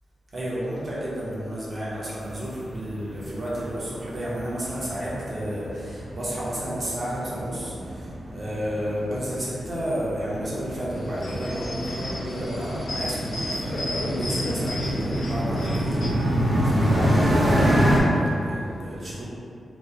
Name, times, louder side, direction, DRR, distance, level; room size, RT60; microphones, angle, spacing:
voice 1, 0.3-19.3, equal, 40° right, -8 dB, 0.8 m, -31 dB
sound 1, 2.2-18.0, equal, 65° right, 0.7 m, -27 dB
sound 2, 10.9-16.1, left 1 dB, 70° left, 0.6 m, -33 dB
2.8 x 2.1 x 3.7 m, 2.6 s
wide cardioid pair, 135°, 0 cm